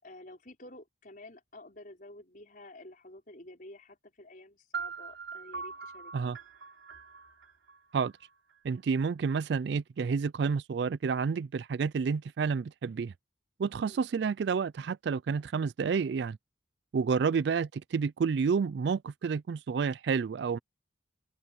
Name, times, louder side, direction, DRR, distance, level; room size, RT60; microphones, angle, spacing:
voice 1, 0.0-6.3 13.8-14.0 17.2-17.4, left 1 dB, 45° left, 5.5 m, -51 dB
sound 1, 4.7-8.6, right 5 dB, 85° right, 3.6 m, -42 dB
voice 2, 8.6-13.1 13.6-16.4 16.9-20.6, right 5 dB, 65° right, 0.3 m, -30 dB
open air
head